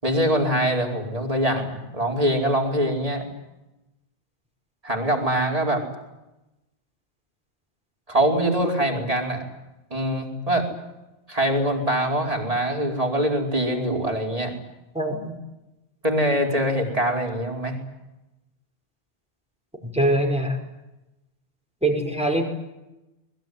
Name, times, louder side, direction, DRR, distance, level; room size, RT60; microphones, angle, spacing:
voice 1, 0.0-3.2 4.8-5.8 8.1-9.4 9.9-10.7 11.3-14.6 16.0-17.8, right 1 dB, 30° right, 1 dB, 4.8 m, -23 dB
voice 2, 14.9-15.4 19.8-20.6 21.8-22.4, right 1 dB, 5° right, 2 dB, 5.4 m, -23 dB
24.0 x 21.5 x 9.5 m, 0.96 s
omnidirectional pair, 1.2 m